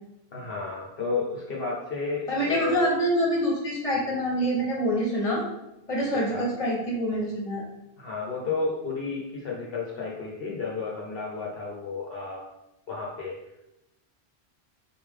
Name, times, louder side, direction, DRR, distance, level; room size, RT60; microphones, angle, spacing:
voice 1, 0.3-2.9 6.2-6.5 8.0-12.5 12.9-13.4, left 4 dB, 60° left, -4 dB, 0.9 m, -32 dB
voice 2, 2.3-5.4 5.9-7.6, equal, 30° left, -3 dB, 1.2 m, -26 dB
4.2 x 3.4 x 3.7 m, 0.91 s
omnidirectional pair, 1.1 m